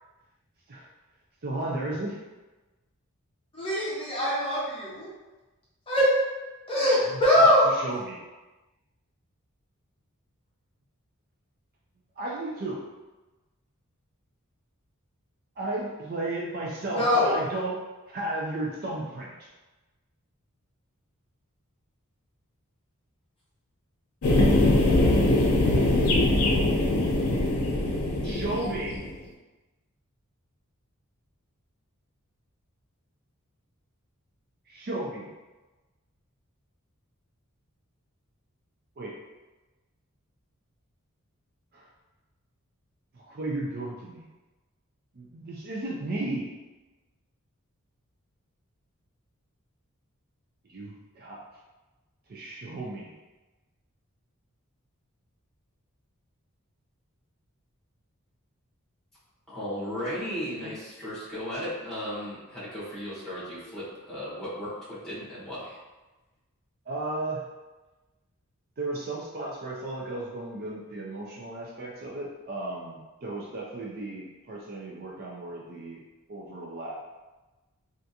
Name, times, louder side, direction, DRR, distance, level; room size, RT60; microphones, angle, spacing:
voice 1, 1.4-2.2 7.1-8.2 12.2-12.8 15.6-19.3 26.1-27.0 28.2-29.0 34.7-35.3 39.0-39.2 41.7-41.9 43.1-44.3 45.1-46.5 50.7-51.4 52.3-53.1 60.6-60.7 66.9-67.5 68.8-76.0 76.3-77.0, right 2 dB, 45° right, -3 dB, 0.4 m, -34 dB
voice 2, 3.5-5.1 5.9-6.2 6.7-7.7 16.9-17.4, left 1 dB, 25° left, -8 dB, 0.7 m, -22 dB
sound 1, 24.2-29.1, left 1 dB, 85° left, 0.6 m, -22 dB
voice 3, 59.5-65.8, equal, ahead, -11 dB, 1.4 m, -35 dB
3.3 x 2.5 x 2.7 m, 1.1 s
head